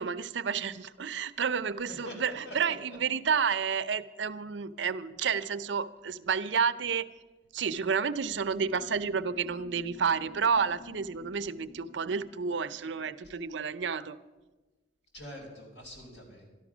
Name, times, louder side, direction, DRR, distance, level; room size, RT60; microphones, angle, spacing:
voice 1, 0.0-7.1 7.5-14.2, right 6 dB, 75° right, 13 dB, 0.5 m, -30 dB
voice 2, 1.9-3.0 15.1-16.5, left 1 dB, 70° left, 0 dB, 4.6 m, -44 dB
sound 1, 8.2-13.2, left 2 dB, 45° left, 2.1 m, -52 dB
13.0 x 12.0 x 6.1 m, 1.2 s
head